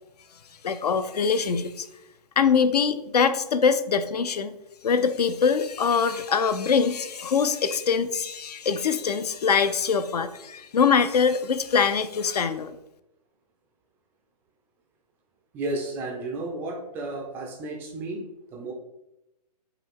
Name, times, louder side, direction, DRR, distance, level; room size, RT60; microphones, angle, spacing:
voice 1, 0.6-1.9 2.4-4.6 4.8-12.8, left 6 dB, 70° left, 12 dB, 0.5 m, -23 dB
voice 2, 15.5-18.7, right 2 dB, 10° right, 2 dB, 0.3 m, -33 dB
5.7 x 2.3 x 3.5 m, 0.88 s
figure-of-eight pair, 130°, 21 cm